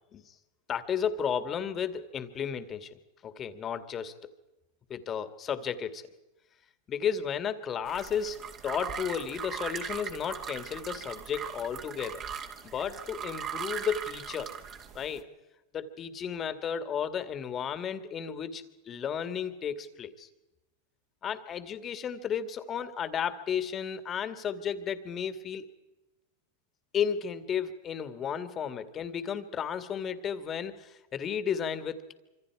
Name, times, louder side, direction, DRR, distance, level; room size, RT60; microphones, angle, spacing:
voice 1, 0.7-4.3 4.9-6.0 6.9-12.2 12.6-14.5 14.9-15.3 15.7-20.3 21.2-25.7 26.9-32.1, left 7 dB, 30° left, 11 dB, 2.1 m, -33 dB
sound 1, 7.8-15.2, right 7 dB, 35° right, 2.6 m, -39 dB
26.0 x 25.5 x 4.9 m, 1.0 s
hypercardioid pair, 120°, 0 cm